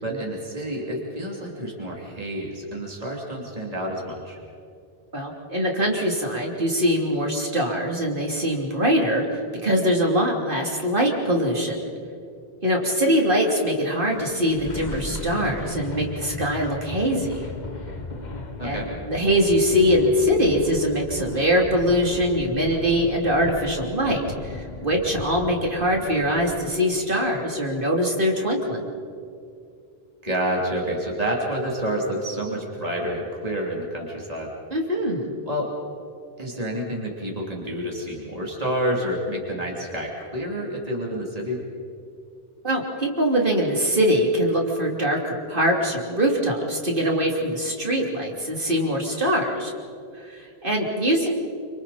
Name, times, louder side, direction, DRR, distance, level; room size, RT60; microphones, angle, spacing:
voice 1, 0.0-4.4 18.6-18.9 30.2-34.5 35.5-35.7 36.4-41.6, equal, 35° right, -2 dB, 3.3 m, -29 dB
voice 2, 5.1-11.9 12.6-17.5 18.6-28.8 34.7-35.3 42.6-49.7 50.1-51.3, equal, 55° right, 0 dB, 3.5 m, -23 dB
sound 1, 13.9-27.0, left 3 dB, 45° left, 1.5 m, -36 dB
28.5 x 26.5 x 4.3 m, 2.4 s
omnidirectional pair, 1.0 m